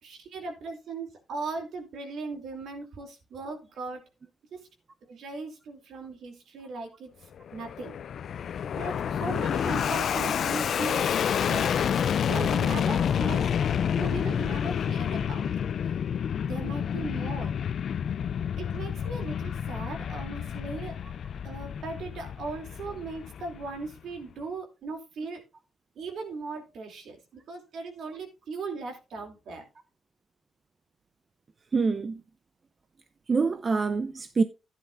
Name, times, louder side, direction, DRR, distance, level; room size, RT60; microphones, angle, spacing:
voice 1, 0.0-4.0 4.5-4.6 5.1-8.0 8.7-11.7 12.3-13.5 14.0-15.5 15.8-16.0 16.5-17.7 18.6-21.0 21.4-25.4 26.0-29.7, right 3 dB, 70° right, 2.9 m, -38 dB
Fixed-wing aircraft airplane, 7.4-24.0, left 8 dB, 60° left, 0.4 m, -29 dB
voice 2, 31.7-32.2 33.3-34.4, right 4 dB, 35° right, 0.6 m, -25 dB
11.5 x 10.0 x 2.6 m
cardioid pair, 90°, 0 cm